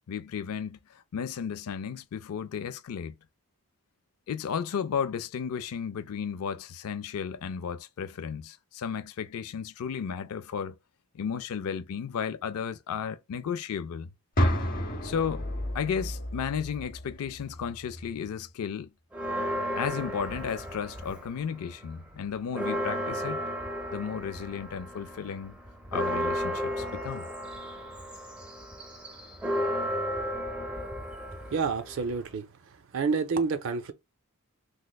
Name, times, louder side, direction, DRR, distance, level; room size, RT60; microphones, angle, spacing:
voice 1, 0.1-3.2 4.3-10.8 11.1-14.1 15.0-15.5 15.7-18.9 19.8-23.4 23.9-25.6 25.9-27.3, left 7 dB, 80° left, 0.4 m, -34 dB
sound 1, 14.4-18.3, equal, 40° left, 0.7 m, -31 dB
Church bell, 19.1-21.5 21.9-22.0 22.3-32.4, equal, 5° right, 0.6 m, -34 dB
voice 2, 31.5-32.5 32.9-33.9, right 5 dB, 60° right, 0.4 m, -28 dB
3.4 x 3.1 x 2.2 m
head